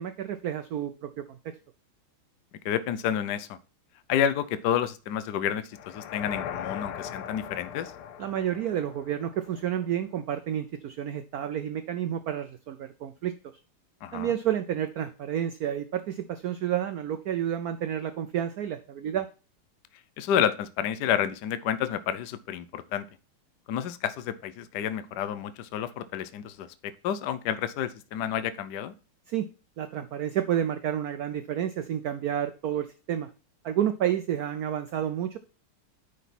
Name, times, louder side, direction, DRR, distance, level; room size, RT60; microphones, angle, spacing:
voice 1, 0.0-1.5 8.2-13.3 14.1-19.3 29.3-29.5 29.8-33.3 33.6-35.4, right 10 dB, 85° right, 10 dB, 0.8 m, -30 dB
voice 2, 2.6-3.6 4.1-7.9 14.0-14.3 20.2-23.0 23.7-26.7 27.0-28.9, left 9 dB, 70° left, 13 dB, 1.1 m, -29 dB
sound 1, 5.7-9.8, left 9 dB, 85° left, 1.7 m, -39 dB
9.6 x 5.1 x 4.2 m, 0.34 s
omnidirectional pair, 2.3 m